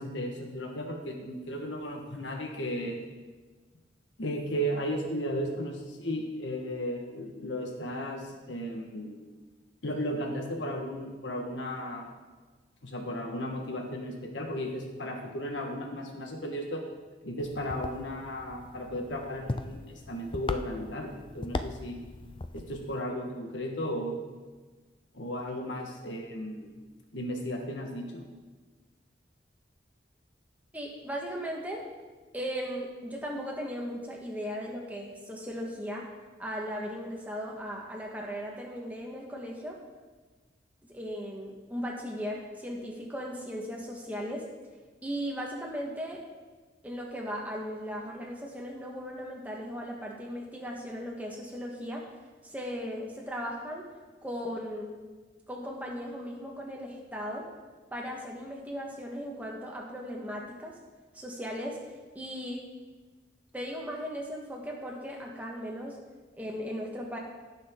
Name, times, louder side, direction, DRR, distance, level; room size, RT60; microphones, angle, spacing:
voice 1, 0.0-3.0 4.2-9.2 9.8-12.1 12.8-16.8 17.2-22.0 22.5-24.2 25.1-26.7 27.1-28.2, equal, 85° left, 1 dB, 1.4 m, -35 dB
sound 1, 17.4-23.0, left 2 dB, 25° left, 0.4 m, -39 dB
voice 2, 30.7-31.8 32.3-36.1 36.4-39.8 40.9-44.4 45.0-46.2 46.8-52.1 52.4-53.8 54.2-55.0 55.5-57.5 57.9-60.7 61.1-61.8 62.1-62.6 63.5-66.0 66.4-67.2, equal, 10° right, -1 dB, 1.5 m, -37 dB
17.0 x 6.4 x 3.8 m, 1.3 s
head